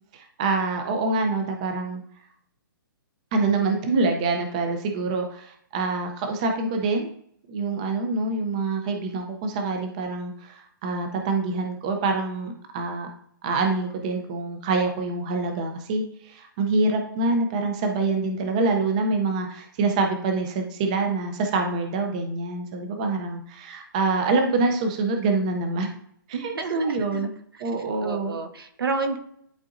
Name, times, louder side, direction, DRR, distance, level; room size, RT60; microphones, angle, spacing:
voice 1, 0.1-2.0 3.3-7.1 7.5-13.1 13.4-25.9 26.3-27.3 27.6-28.4, right 3 dB, 20° right, 3 dB, 0.5 m, -26 dB
voice 2, 26.3-27.3 27.5-27.6 28.0-29.2, right 4 dB, 80° right, 6 dB, 1.3 m, -30 dB
11.0 x 3.8 x 2.5 m, 0.67 s
hypercardioid pair, 175°, 12 cm